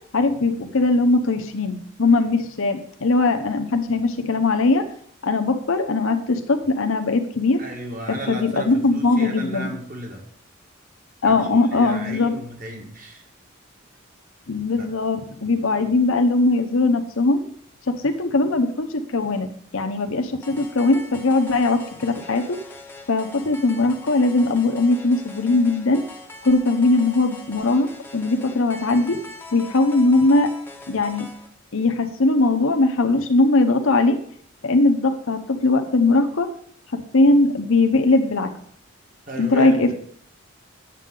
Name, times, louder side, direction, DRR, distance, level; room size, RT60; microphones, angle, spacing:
voice 1, 0.1-4.8 5.2-7.6 8.1-9.7 11.2-12.3 14.5-17.4 17.9-19.5 19.7-22.6 23.1-26.0 26.4-29.2 29.5-30.5 30.9-31.3 31.7-34.2 34.6-36.5 36.9-38.5 39.4-39.9, left 2 dB, 75° left, 5 dB, 0.8 m, -20 dB
voice 2, 7.6-10.2 11.2-13.2 14.8-14.9 15.8-15.9 39.3-39.9, right 1 dB, 40° right, 1 dB, 1.7 m, -34 dB
sound 1, 20.4-31.5, left 2 dB, 10° left, 0.9 m, -42 dB
9.0 x 7.6 x 3.8 m, 0.62 s
head